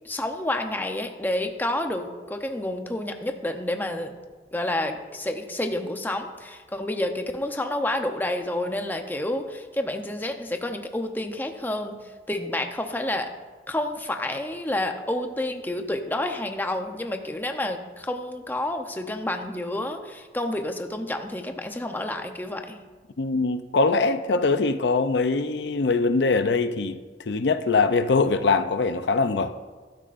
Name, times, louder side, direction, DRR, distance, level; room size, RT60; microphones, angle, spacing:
voice 1, 0.0-4.1 4.5-11.9 12.3-13.3 13.7-22.8, left 1 dB, 10° left, 5 dB, 0.7 m, -29 dB
voice 2, 23.2-27.0 27.3-29.5, left 4 dB, 75° left, 10 dB, 0.5 m, -22 dB
14.0 x 12.5 x 2.5 m, 1.4 s
head